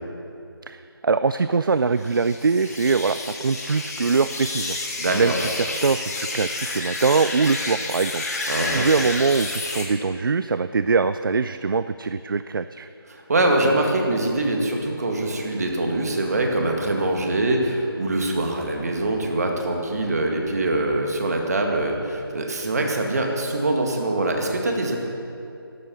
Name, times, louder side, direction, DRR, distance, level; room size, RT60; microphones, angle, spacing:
voice 1, 0.7-4.8 5.1-8.2 8.6-12.9, right 4 dB, 60° right, 13 dB, 0.4 m, -23 dB
sound 1, 2.0-9.9, left 2 dB, 40° left, 1.8 m, -30 dB
voice 2, 5.0-5.3 8.5-8.9 13.1-25.0, right 2 dB, 40° right, 2 dB, 1.9 m, -23 dB
12.5 x 11.5 x 6.4 m, 2.6 s
figure-of-eight pair, 165°, 13 cm